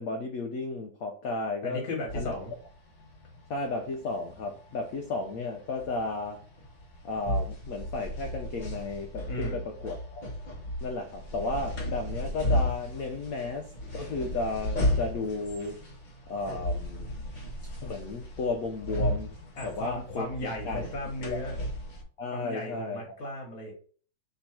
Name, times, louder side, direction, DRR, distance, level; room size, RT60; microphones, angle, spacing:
voice 1, 0.0-1.8 2.1-2.3 3.5-6.4 7.0-10.2 10.8-15.8 16.3-17.1 17.8-19.4 19.6-20.9 21.3-21.4 22.2-23.0, left 3 dB, 80° left, 4 dB, 0.7 m, -34 dB
voice 2, 1.6-2.5 9.3-9.6 19.6-21.5 22.3-23.7, left 1 dB, 50° left, -1 dB, 1.5 m, -36 dB
sound 1, 2.1-22.0, equal, 30° left, 0.9 m, -35 dB
3.4 x 3.0 x 4.3 m, 0.43 s
omnidirectional pair, 2.2 m